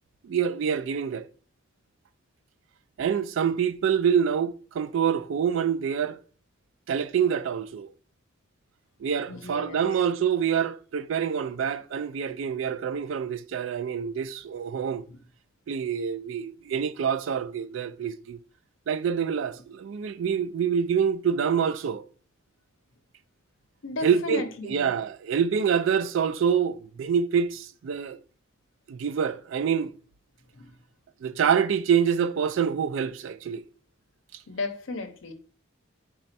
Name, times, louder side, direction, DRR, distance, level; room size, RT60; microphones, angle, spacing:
voice 1, 0.2-1.3 3.0-6.2 6.9-7.9 9.0-15.0 15.7-18.4 18.9-22.0 24.0-24.4 24.7-28.2 28.9-29.9 31.2-33.6, right 7 dB, 65° right, 0.3 m, -26 dB
voice 2, 9.3-10.0 14.8-15.2 23.8-25.0 30.5-30.8 34.5-35.3, left 2 dB, 70° left, 0.7 m, -35 dB
4.2 x 2.3 x 4.0 m
head